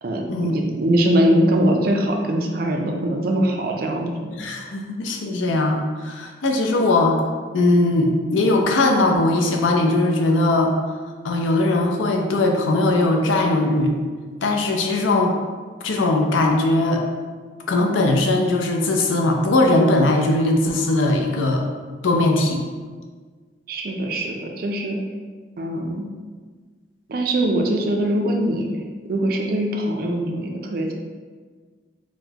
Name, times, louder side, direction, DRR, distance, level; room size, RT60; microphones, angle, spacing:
voice 1, 0.0-4.1 23.7-25.0 25.6-26.1 27.1-28.7 29.1-30.9, right 1 dB, 50° right, 2 dB, 0.4 m, -22 dB
voice 2, 4.3-7.2 7.5-10.7 11.2-14.0 14.4-15.3 15.8-17.0 17.7-21.6 22.0-22.6, left 2 dB, 85° left, 2 dB, 0.5 m, -19 dB
4.1 x 2.1 x 2.7 m, 1.5 s
head